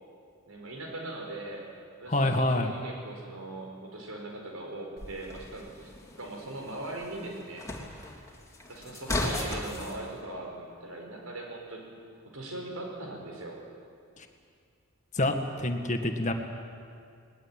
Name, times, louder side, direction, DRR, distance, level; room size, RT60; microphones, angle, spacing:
voice 1, 0.5-1.6 2.0-5.9 6.2-7.6 8.7-11.9 12.3-13.6, right 2 dB, 80° right, 0 dB, 5.2 m, -40 dB
voice 2, 2.1-2.7 14.2-14.3 15.1-16.3, left 1 dB, 35° left, 5 dB, 1.9 m, -27 dB
sound 1, 5.0-10.0, left 1 dB, 15° left, 2.9 m, -37 dB
21.0 x 20.0 x 9.0 m, 2.3 s
head